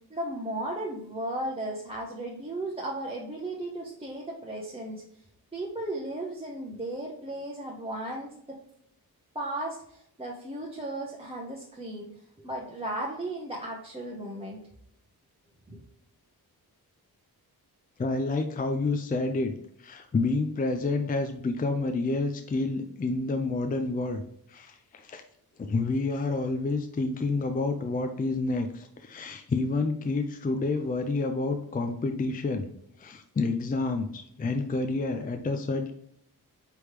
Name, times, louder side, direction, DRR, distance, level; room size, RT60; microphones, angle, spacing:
voice 1, 0.1-5.0 5.5-8.6 9.3-12.1 12.4-14.6 15.7-15.8, right 1 dB, 15° right, -3 dB, 0.8 m, -35 dB
voice 2, 18.0-19.5 19.8-24.2 24.5-25.2 25.6-32.7 33.0-35.9, left 3 dB, 25° left, 6 dB, 0.4 m, -29 dB
5.1 x 3.1 x 3.0 m, 0.71 s
cardioid pair, 80°, 39 cm